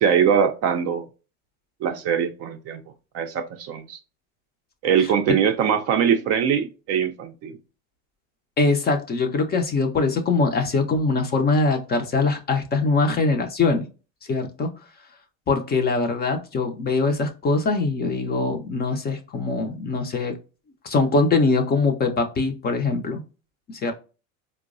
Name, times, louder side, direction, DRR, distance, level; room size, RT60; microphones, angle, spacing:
voice 1, 0.0-1.0 1.8-2.8 3.1-4.0 4.8-7.6, right 8 dB, 40° right, 0.4 m, -22 dB
voice 2, 8.6-13.9 14.3-14.7 15.5-20.3 20.8-23.2 23.7-23.9, left 3 dB, 25° left, 0.4 m, -22 dB
4.4 x 2.0 x 2.4 m
hypercardioid pair, 90°, 42 cm